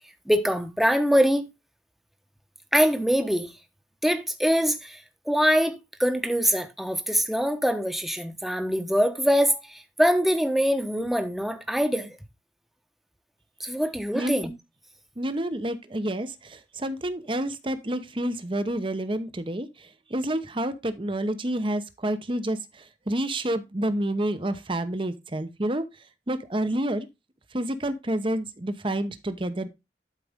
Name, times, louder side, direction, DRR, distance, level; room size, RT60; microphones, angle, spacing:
voice 1, 0.3-1.5 2.7-3.5 4.0-12.2 13.6-14.5, equal, ahead, 1.0 m, -24 dB
voice 2, 15.2-25.8 26.3-27.1 27.5-29.7, right 1 dB, 30° right, 0.9 m, -29 dB
11.5 x 5.0 x 3.5 m
head